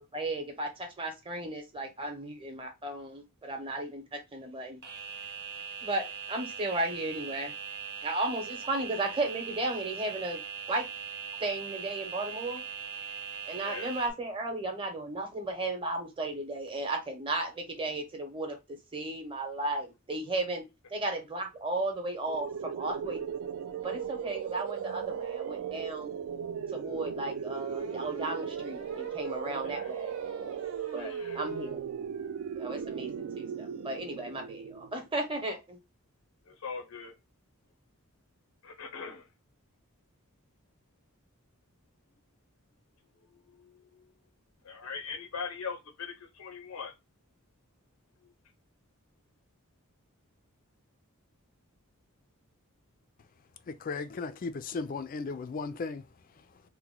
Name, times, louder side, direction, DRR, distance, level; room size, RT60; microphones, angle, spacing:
voice 1, 0.1-4.8 5.8-7.5 8.0-10.4 10.7-10.8 11.4-12.6 13.5-18.6 18.9-20.6 20.9-23.2 23.8-26.1 26.7-30.1 30.9-31.8 32.6-35.8, right 2 dB, 25° right, 0.8 m, -35 dB
sound 1, 4.8-14.1, right 7 dB, 50° right, 0.9 m, -40 dB
voice 2, 13.5-13.9 29.6-29.9 31.0-31.4 36.5-37.1 38.6-39.3 43.3-44.0 44.6-46.9 48.2-48.3, left 5 dB, 90° left, 0.6 m, -41 dB
sound 2, 22.3-35.1, right 8 dB, 65° right, 0.3 m, -37 dB
sound 3, 26.2-26.3 27.5-31.8 32.2-32.3 32.5-32.6 32.8-33.1, right 3 dB, 90° right, 0.8 m, -47 dB
voice 3, 53.7-56.0, left 4 dB, 40° left, 0.3 m, -36 dB
2.9 x 2.1 x 3.7 m
head